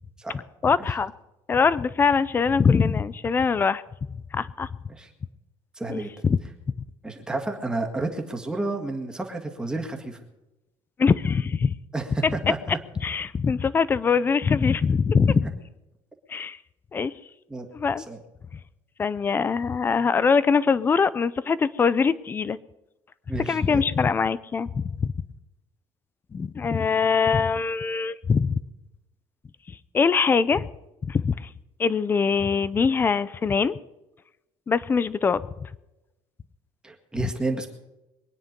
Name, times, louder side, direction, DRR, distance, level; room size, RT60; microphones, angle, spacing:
voice 1, 0.6-1.1 1.5-3.8 4.3-4.7 5.9-6.4 11.0-11.8 12.2-12.8 13.0-15.5 16.3-16.6 16.9-17.1 17.7-18.1 19.0-22.6 23.3-25.1 26.3-28.6 29.7-30.7 31.0-31.5 31.8-33.8 34.7-35.7, left 5 dB, 20° left, 18 dB, 0.5 m, -23 dB
voice 2, 5.8-6.1 7.0-10.2 11.9-12.6 15.4-15.5 17.5-17.7 18.1-18.2 23.3-23.8 36.8-37.7, right 2 dB, 5° right, 3 dB, 1.7 m, -30 dB
23.0 x 9.8 x 5.3 m, 0.97 s
cardioid pair, 170°, 11 cm